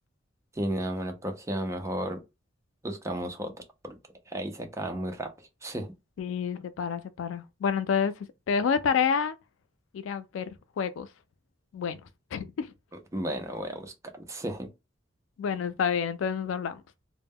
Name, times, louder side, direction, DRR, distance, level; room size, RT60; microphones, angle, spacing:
voice 1, 0.6-2.2 2.8-3.5 3.8-4.0 4.3-5.3 5.6-5.9 12.9-14.7, right 1 dB, 15° right, 0.5 m, -33 dB
voice 2, 6.2-9.4 9.9-11.1 11.7-12.0 12.3-12.7 15.4-16.8, left 6 dB, 90° left, 0.3 m, -29 dB
2.1 x 2.0 x 3.4 m
head